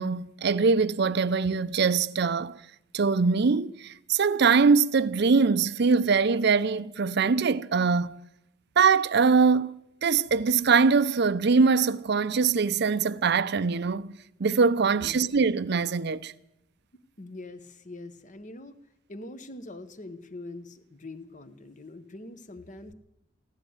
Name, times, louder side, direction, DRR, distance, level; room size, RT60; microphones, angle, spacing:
voice 1, 0.0-2.6 2.9-8.2 8.8-9.7 10.0-16.3, right 5 dB, 55° right, 0.5 m, -23 dB
voice 2, 16.9-18.7 19.1-22.9, left 2 dB, 40° left, 1.0 m, -43 dB
16.0 x 11.5 x 7.9 m
head